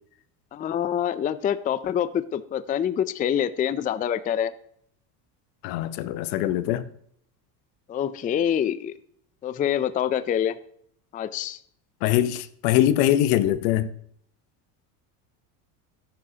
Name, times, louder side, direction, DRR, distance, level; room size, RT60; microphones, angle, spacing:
voice 1, 0.5-4.5 7.9-8.9 9.4-10.6 11.1-11.6, left 9 dB, 20° left, 0.3 m, -26 dB
voice 2, 5.6-6.9 12.0-13.9, left 12 dB, 75° left, 0.9 m, -22 dB
13.0 x 10.5 x 2.8 m
supercardioid pair, 85°, 49 cm